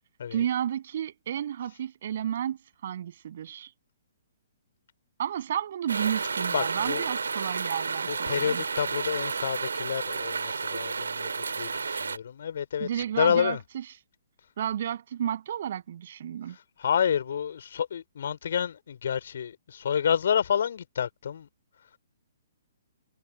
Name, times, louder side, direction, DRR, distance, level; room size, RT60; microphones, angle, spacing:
voice 1, 0.3-3.7 5.2-8.6 12.8-13.8 14.6-16.6, right 10 dB, 45° right, 7.9 m, -32 dB
sound 1, 5.9-12.2, right 5 dB, 65° right, 3.2 m, -31 dB
voice 2, 6.5-7.0 8.1-12.9 13.2-13.6 16.8-21.5, left 8 dB, 50° left, 4.2 m, -29 dB
figure-of-eight pair, 125°, 0 cm